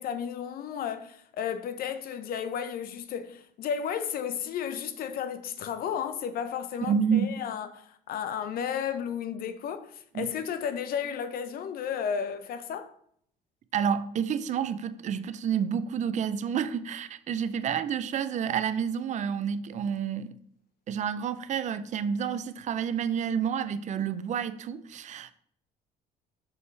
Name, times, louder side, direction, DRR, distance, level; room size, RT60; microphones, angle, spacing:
voice 1, 0.0-12.9, left 8 dB, 60° left, 0.7 m, -33 dB
voice 2, 6.9-7.4 10.1-10.3 13.7-20.3 20.9-25.3, right 7 dB, 45° right, 0.5 m, -29 dB
6.4 x 5.5 x 3.3 m
cardioid pair, 110°, 17 cm